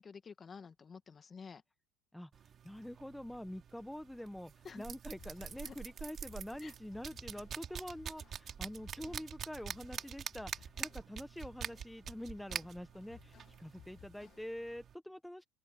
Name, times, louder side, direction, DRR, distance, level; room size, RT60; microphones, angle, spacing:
voice 1, 0.0-1.6 4.6-4.8 5.6-5.7 6.6-6.7, left 5 dB, 20° left, 1.5 m, -50 dB
sound 1, 2.3-14.9, right 8 dB, 30° right, 3.1 m, -46 dB
voice 2, 2.6-15.4, left 1 dB, ahead, 0.8 m, -46 dB
sound 2, 5.1-14.7, left 10 dB, 40° left, 3.1 m, -62 dB
open air
cardioid pair, 140°, 0 cm